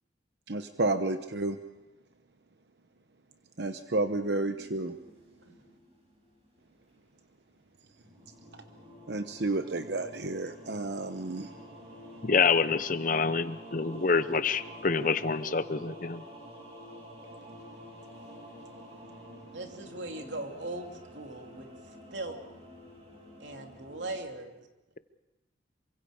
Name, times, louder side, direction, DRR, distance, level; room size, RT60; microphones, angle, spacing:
voice 1, 0.5-1.6 3.6-5.0 9.1-11.5, right 2 dB, 65° right, 8 dB, 1.0 m, -31 dB
sound 1, 4.2-7.2 7.7-24.2, equal, 35° right, 7.5 m, -49 dB
voice 2, 12.2-16.2, left 5 dB, 45° left, 13 dB, 0.9 m, -27 dB
voice 3, 19.5-22.4 23.4-24.7, right 2 dB, 85° right, 3 dB, 2.8 m, -40 dB
27.5 x 25.0 x 5.1 m, 0.97 s
head